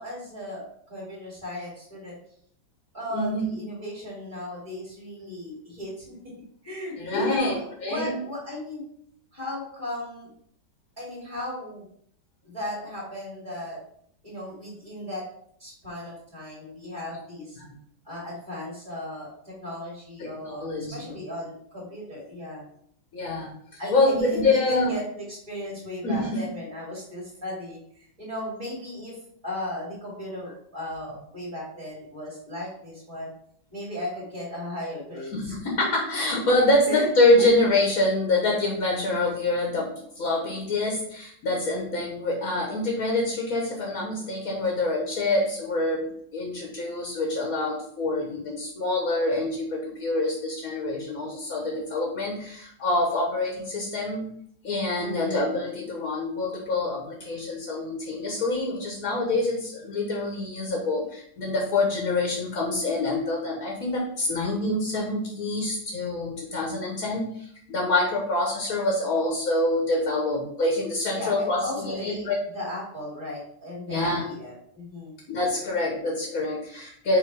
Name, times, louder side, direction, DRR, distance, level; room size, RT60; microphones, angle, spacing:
voice 1, 0.0-2.1 2.9-6.2 6.6-8.8 9.3-10.3 11.0-11.9 12.4-13.8 14.2-15.2 15.6-17.6 18.0-22.6 23.8-29.2 29.4-33.3 33.7-35.5 36.9-37.1 37.4-37.5 55.0-55.4 71.1-72.3 72.5-75.2, left 1 dB, 15° right, -6 dB, 2.5 m, -36 dB
voice 2, 3.1-3.4 7.0-8.1 17.6-17.7 20.2-20.3 20.6-21.2 23.1-23.5 23.9-24.9 26.0-26.4 35.3-46.1 46.3-54.3 54.6-67.3 67.7-72.3 73.9-74.3 75.3-77.2, left 2 dB, 55° left, -1 dB, 1.6 m, -26 dB
5.1 x 3.9 x 4.8 m, 0.65 s
omnidirectional pair, 1.9 m